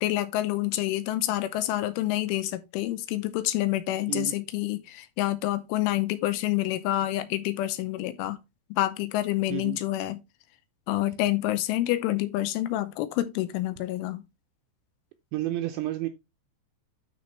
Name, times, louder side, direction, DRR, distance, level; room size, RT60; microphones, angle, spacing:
voice 1, 0.0-8.4 8.7-10.2 10.9-14.2, left 15 dB, 80° left, 3.0 m, -28 dB
voice 2, 15.3-16.1, right 15 dB, 90° right, 2.6 m, -30 dB
12.5 x 4.3 x 3.1 m
omnidirectional pair, 6.0 m